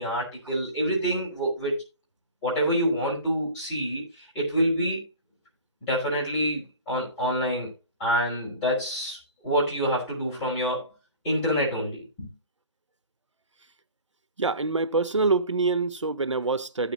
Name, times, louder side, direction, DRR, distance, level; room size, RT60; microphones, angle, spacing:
voice 1, 0.0-1.8 2.4-5.0 5.8-7.7 8.0-9.2 9.4-10.9 11.2-12.3, equal, 15° left, 5.3 m, -27 dB
voice 2, 14.4-16.9, right 3 dB, 85° right, 1.1 m, -25 dB
15.5 x 7.0 x 3.0 m
figure-of-eight pair, 165°, 15 cm